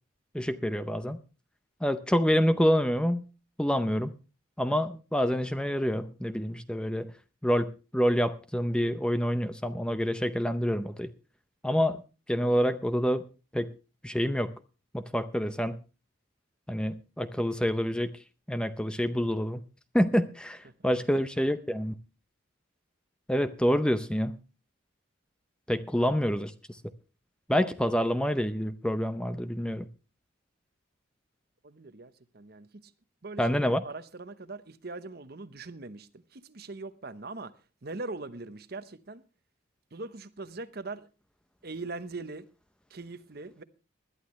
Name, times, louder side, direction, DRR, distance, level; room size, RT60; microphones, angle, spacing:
voice 1, 0.3-1.2 1.8-3.2 3.6-4.1 4.6-7.1 7.4-11.1 11.6-12.0 12.3-13.2 13.5-13.7 14.0-14.5 14.9-15.8 16.7-18.2 18.5-19.6 19.9-21.9 23.3-24.4 25.7-26.8 27.5-29.9 33.4-33.8, equal, 5° left, 0.6 m, -27 dB
voice 2, 31.6-32.9 33.2-37.5 37.8-39.2 39.9-41.1 41.6-42.5 42.9-43.6, right 3 dB, 50° right, 0.9 m, -41 dB
20.0 x 11.5 x 3.1 m
head